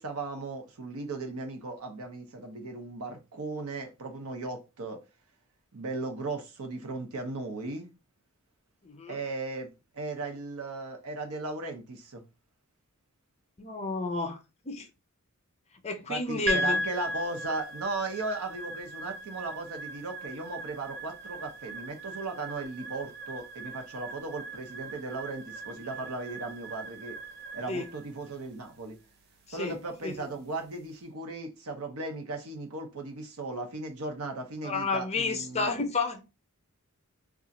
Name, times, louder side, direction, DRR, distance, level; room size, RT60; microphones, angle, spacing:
voice 1, 0.0-5.0 5.7-7.9 9.1-12.2 16.1-27.2 27.5-29.0 29.5-35.7, right 3 dB, 75° right, 0.8 m, -37 dB
voice 2, 8.8-9.2 13.6-14.4 14.6-14.9 15.8-16.8 27.7-27.9 29.5-29.8 30.0-30.2 34.6-36.2, left 3 dB, 30° left, 0.6 m, -31 dB
sound 1, 16.5-30.8, equal, 45° right, 0.5 m, -38 dB
2.4 x 2.4 x 4.0 m
head